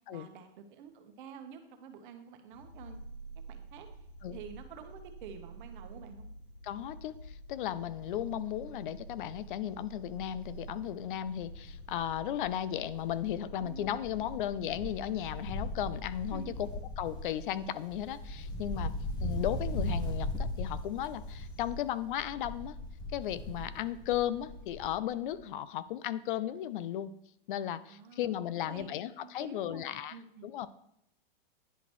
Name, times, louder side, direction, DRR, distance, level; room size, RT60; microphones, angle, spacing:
voice 1, 0.1-3.0 3.5-4.1 4.3-6.3 13.6-14.4 16.3-16.6 18.9-19.3 27.9-30.5, right 7 dB, 55° right, 6 dB, 1.1 m, -50 dB
sound 1, 2.5-21.7, right 2 dB, 75° left, 2.5 m, -49 dB
voice 2, 6.6-16.4 17.0-18.9 19.2-22.8 23.1-27.1 27.5-30.2 30.4-30.7, left 11 dB, 60° left, 16 dB, 0.5 m, -35 dB
Wind, 8.0-8.3 8.7-8.8 9.1-12.6 12.9-25.1 25.3-25.4, left 1 dB, 15° left, 1.0 m, -39 dB
10.0 x 3.9 x 3.1 m, 0.77 s
hypercardioid pair, 135°, 30 cm